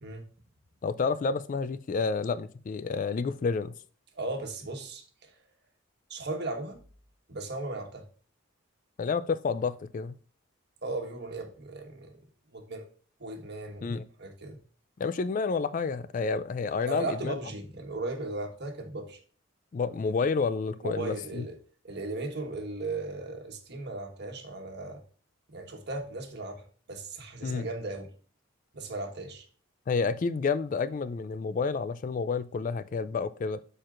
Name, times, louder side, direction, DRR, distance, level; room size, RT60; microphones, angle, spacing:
voice 1, 0.8-3.7 9.0-10.2 13.8-14.0 15.0-17.3 19.7-21.4 27.4-27.7 29.9-33.6, left 4 dB, 40° left, 0.3 m, -29 dB
voice 2, 4.1-5.3 6.1-6.8 7.3-8.0 10.8-12.2 12.5-12.8 13.2-13.9 14.2-14.6 16.9-19.2 20.8-21.6 21.8-25.0 25.5-28.1 28.7-29.4, right 2 dB, 50° right, 1.3 m, -37 dB
12.5 x 4.4 x 2.5 m
head